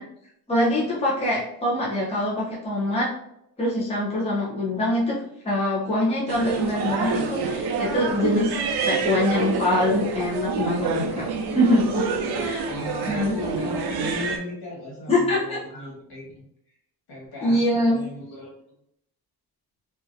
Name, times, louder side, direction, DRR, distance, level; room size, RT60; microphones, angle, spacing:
voice 1, 0.5-3.1 3.6-5.2 5.4-8.6 8.9-12.0 12.4-12.7 13.1-13.4 15.1-15.8 17.4-18.0, left 1 dB, 15° left, -6 dB, 0.7 m, -24 dB
sound 1, 6.3-14.4, right 4 dB, 85° right, 0.5 m, -27 dB
voice 2, 12.7-16.8 17.1-18.5, left 1 dB, 70° left, -5 dB, 1.5 m, -36 dB
2.8 x 2.5 x 2.5 m, 0.74 s
wide cardioid pair, 160°, 38 cm